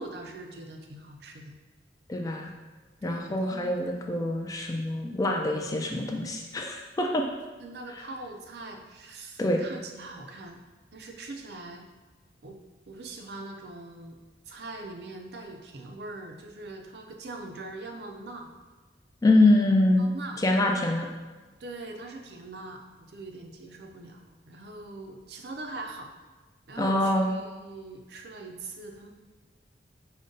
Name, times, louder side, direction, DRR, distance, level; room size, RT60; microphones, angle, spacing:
voice 1, 0.0-1.6 3.0-3.8 4.1-4.4 7.6-10.6 10.9-11.8 12.4-12.6 12.9-14.2 14.5-18.5 20.0-20.4 21.6-26.1 26.7-29.1, right 2 dB, 60° right, 3 dB, 0.5 m, -42 dB
voice 2, 2.1-2.5 3.0-7.2 9.4-9.6 19.2-20.0 20.4-21.1 26.8-27.3, left 2 dB, 20° left, 1 dB, 0.3 m, -24 dB
5.2 x 2.1 x 3.7 m, 1.3 s
head